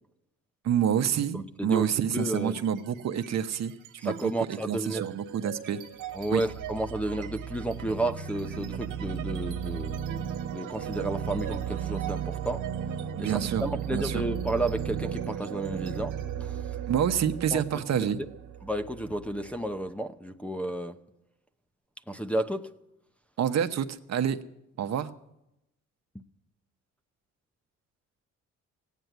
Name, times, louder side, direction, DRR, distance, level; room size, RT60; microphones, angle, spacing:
voice 1, 0.6-3.7 4.0-5.8 6.3-6.4 13.1-14.2 16.9-18.2 23.4-24.4 24.8-25.1, right 8 dB, 60° right, 1.0 m, -28 dB
voice 2, 1.3-1.9 2.1-2.6 4.0-5.0 6.1-12.6 13.2-16.1 16.4-16.5 17.5-17.6 18.6-21.0 22.1-22.7, right 1 dB, 5° left, 0.8 m, -32 dB
sound 1, 2.3-2.8 3.1-19.7, right 9 dB, 80° right, 1.3 m, -36 dB
16.0 x 9.3 x 9.3 m
cardioid pair, 90°, 30 cm